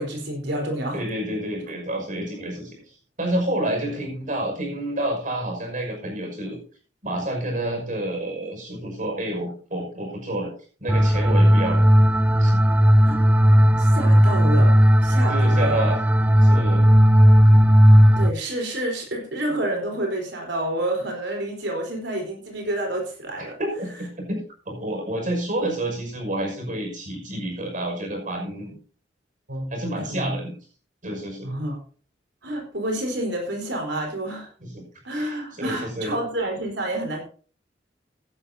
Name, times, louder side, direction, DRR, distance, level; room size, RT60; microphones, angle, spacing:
voice 1, 0.0-1.0 3.8-4.0 13.0-13.2 13.8-15.9 18.2-23.6 29.5-30.4 31.4-31.8 32.4-34.5 35.0-37.2, right 1 dB, 90° right, 1 dB, 4.3 m, -29 dB
voice 2, 0.9-2.7 3.2-6.6 7.0-10.5 10.8-11.9 12.4-12.6 15.3-16.0 16.4-16.8 23.4-28.8 29.7-30.5 31.0-31.5 34.6-34.8 35.1-36.1, right 1 dB, 45° right, 2 dB, 5.9 m, -29 dB
sound 1, 10.9-18.3, equal, 10° right, 0.4 m, -15 dB
16.0 x 11.5 x 2.8 m, 0.40 s
head